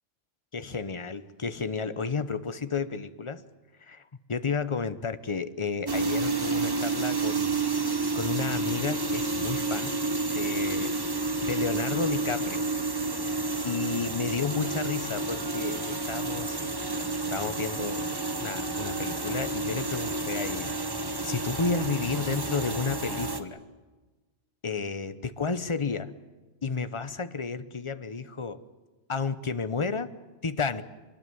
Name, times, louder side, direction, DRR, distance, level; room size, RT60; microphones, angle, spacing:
voice 1, 0.5-3.4 3.8-4.0 4.3-7.6 8.1-10.0 10.3-10.9 11.4-12.7 13.6-20.9 21.2-23.6 24.6-26.1 26.6-28.6 29.1-30.1 30.4-30.8, left 4 dB, 30° left, 12 dB, 0.8 m, -32 dB
sound 1, 5.9-23.4, right 3 dB, 20° right, 1.2 m, -30 dB
24.5 x 20.0 x 9.5 m, 1.3 s
omnidirectional pair, 1.3 m